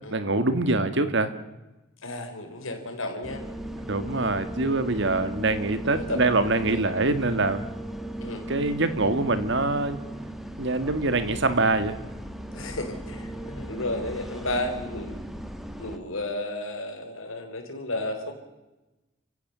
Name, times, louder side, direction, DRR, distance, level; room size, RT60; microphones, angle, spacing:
voice 1, 0.0-1.3 3.9-7.7 8.5-10.0 10.6-12.0, right 2 dB, 60° right, 11 dB, 1.8 m, -24 dB
voice 2, 2.0-3.4 4.2-4.4 5.0-5.2 5.9-6.8 8.2-8.5 12.5-15.2 15.8-18.3, left 1 dB, 85° left, 4 dB, 4.3 m, -33 dB
sound 1, 3.2-16.0, right 1 dB, ahead, 1.8 m, -37 dB
28.5 x 16.5 x 6.9 m, 1.0 s
head